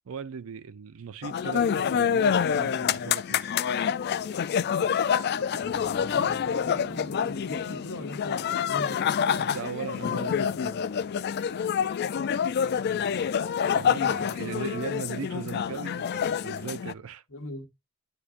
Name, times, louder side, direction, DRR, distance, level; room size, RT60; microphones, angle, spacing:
voice 1, 0.1-3.5 9.3-10.8 13.7-17.2, right 6 dB, 65° right, 0.5 m, -38 dB
sound 1, 1.2-16.9, left 7 dB, 45° left, 0.3 m, -27 dB
voice 2, 5.4-9.2 12.6-13.3 14.0-14.3 17.3-17.7, left 1 dB, 70° left, 1.4 m, -40 dB
Motor vehicle (road), 5.6-14.6, left 1 dB, 20° left, 0.7 m, -50 dB
9.8 x 4.4 x 2.5 m
head